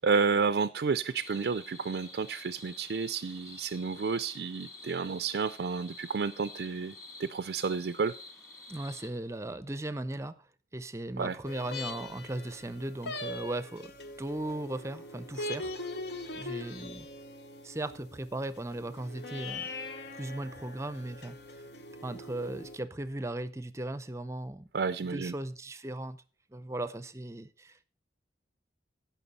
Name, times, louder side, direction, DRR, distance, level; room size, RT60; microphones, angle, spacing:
voice 1, 0.0-8.1 11.2-11.4 24.7-25.3, right 5 dB, 65° right, 0.4 m, -31 dB
sound 1, 1.1-9.1, left 3 dB, 15° left, 1.7 m, -49 dB
voice 2, 8.7-10.3 10.7-13.9 14.2-17.1 17.6-19.7 20.1-21.4 22.0-24.7 25.1-26.2 26.5-27.9, right 1 dB, 15° right, 0.5 m, -37 dB
sound 2, 11.4-22.8, left 2 dB, 70° left, 0.9 m, -42 dB
16.5 x 6.0 x 4.1 m
head